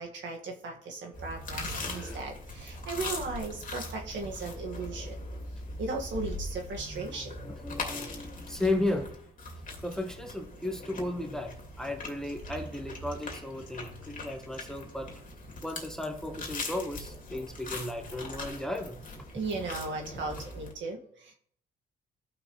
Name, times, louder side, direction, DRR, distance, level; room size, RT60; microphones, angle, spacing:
voice 1, 0.0-5.2 5.8-7.4 19.3-21.3, right 3 dB, 70° right, 1 dB, 1.7 m, -37 dB
sound 1, 1.1-20.7, left 2 dB, 40° left, 2.4 m, -41 dB
voice 2, 1.7-2.2 7.4-9.1 9.8-15.1 15.6-19.0, left 1 dB, 5° left, 5 dB, 1.1 m, -35 dB
14.5 x 6.2 x 3.1 m, 0.63 s
cardioid pair, 90°, 20 cm